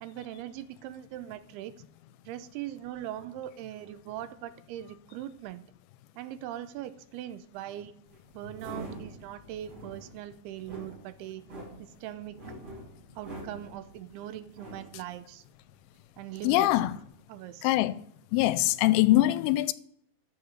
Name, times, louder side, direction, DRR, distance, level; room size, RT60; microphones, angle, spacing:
voice 1, 0.0-1.8 2.3-5.6 6.2-7.9 8.3-11.4 11.8-12.4 13.2-15.4 16.2-16.9 17.3-17.7, right 12 dB, 85° right, 2.6 m, -41 dB
sound 1, 8.1-16.0 16.3-17.1, right 2 dB, 35° right, 3.1 m, -45 dB
voice 2, 16.4-17.0 17.6-18.0 18.3-19.7, left 16 dB, 85° left, 2.3 m, -23 dB
10.5 x 6.9 x 6.5 m
omnidirectional pair, 4.5 m